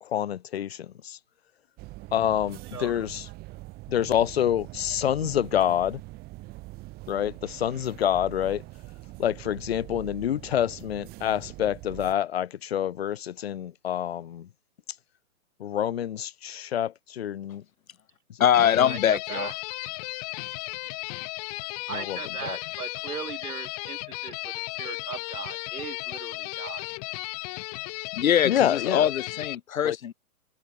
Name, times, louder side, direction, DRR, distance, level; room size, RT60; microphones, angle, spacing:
voice 1, 0.0-1.2 2.1-3.3 3.9-6.0 7.1-8.6 9.2-14.5 15.6-17.6 18.3-19.0 21.9-22.6 28.4-29.1 29.8-30.0, left 10 dB, 50° left, 0.4 m, -27 dB
sound 1, 1.8-12.1, right 21 dB, 20° right, 7.6 m, -43 dB
voice 2, 2.7-3.0 18.9-19.5 21.9-26.9, right 7 dB, 85° right, 4.5 m, -38 dB
voice 3, 18.4-19.5 28.1-30.1, left 9 dB, 70° left, 1.6 m, -23 dB
sound 2, 18.5-29.6, left 28 dB, 25° left, 3.5 m, -35 dB
hypercardioid pair, 165°, 43 cm